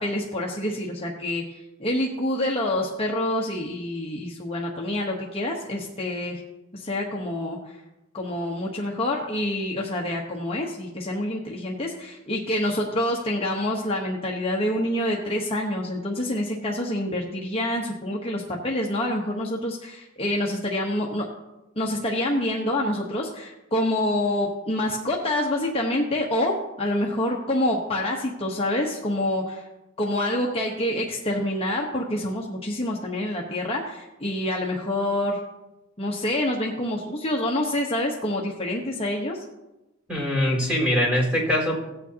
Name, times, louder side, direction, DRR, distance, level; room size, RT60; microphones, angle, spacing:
voice 1, 0.0-6.4 6.7-7.8 8.1-21.3 21.8-29.6 30.0-35.4 36.0-39.4, left 1 dB, 30° left, -2 dB, 1.1 m, -27 dB
voice 2, 40.1-41.8, equal, 5° right, -4 dB, 4.2 m, -22 dB
16.5 x 9.0 x 2.8 m, 1.0 s
head